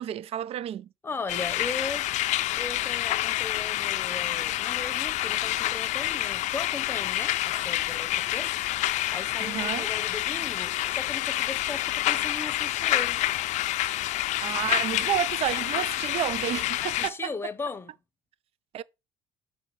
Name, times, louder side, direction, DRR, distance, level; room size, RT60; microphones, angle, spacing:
voice 1, 0.0-0.9 9.4-9.9 14.4-17.5 18.7-18.8, right 11 dB, 45° right, 0.4 m, -31 dB
voice 2, 1.0-2.1 2.6-13.3 16.8-17.9, left 3 dB, 15° left, 0.8 m, -38 dB
sound 1, 1.3-17.1, left 15 dB, 60° left, 0.5 m, -28 dB
5.3 x 5.0 x 4.6 m
supercardioid pair, 105°, 14 cm